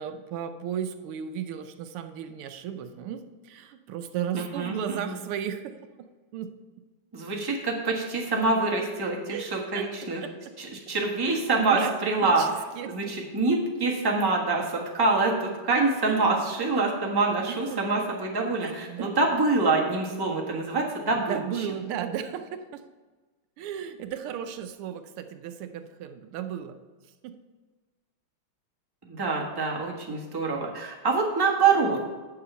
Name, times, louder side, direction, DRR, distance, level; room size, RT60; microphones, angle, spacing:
voice 1, 0.0-6.1 6.3-6.5 9.3-9.5 9.7-9.8 10.2-10.5 11.3-11.4 11.7-11.9 12.2-13.0 16.0-16.3 17.5-17.8 18.6-19.1 21.3-22.8 23.6-26.8 27.2-27.4, right 9 dB, 80° right, 8 dB, 1.6 m, -35 dB
voice 2, 4.3-5.2 7.1-10.2 10.6-12.4 12.8-21.7 29.0-32.0, right 3 dB, 15° right, -1 dB, 1.0 m, -26 dB
8.4 x 6.7 x 5.5 m, 1.3 s
omnidirectional pair, 2.4 m